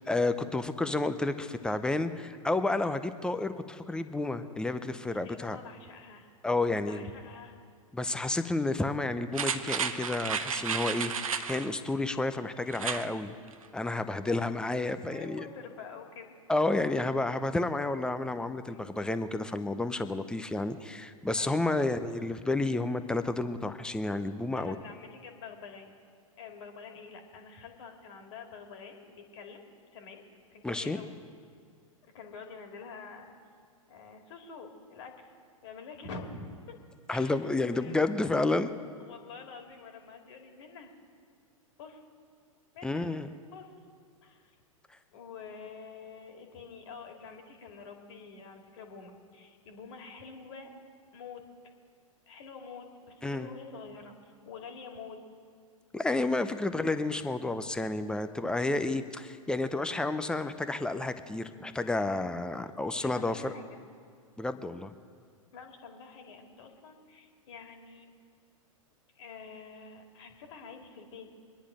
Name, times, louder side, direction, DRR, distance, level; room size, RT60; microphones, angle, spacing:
voice 1, 0.0-5.6 6.4-7.1 7.9-13.3 13.7-15.5 16.5-24.8 30.6-31.0 37.1-38.7 42.8-43.3 53.2-53.5 55.9-63.5 64.4-65.0, left 2 dB, 5° left, 11 dB, 0.6 m, -31 dB
voice 2, 5.1-6.3 6.8-7.6 14.1-14.6 14.9-16.4 18.7-18.9 21.3-21.9 24.5-25.9 26.4-29.6 29.9-30.2 30.5-31.1 32.0-33.3 33.9-35.3 35.6-36.5 37.1-38.0 39.0-40.9 41.8-42.0 42.7-43.2 43.5-43.7 44.2-44.6 45.1-50.7 51.1-51.4 52.3-55.2 56.7-56.9 62.9-63.8 65.5-68.2 69.2-71.3, left 5 dB, 55° left, 3 dB, 2.3 m, -47 dB
sound 1, 9.3-11.7 12.7-13.1 13.5-13.6, right 6 dB, 75° right, 0.9 m, -32 dB
24.0 x 10.0 x 5.0 m, 2.1 s
figure-of-eight pair, 105°, 18 cm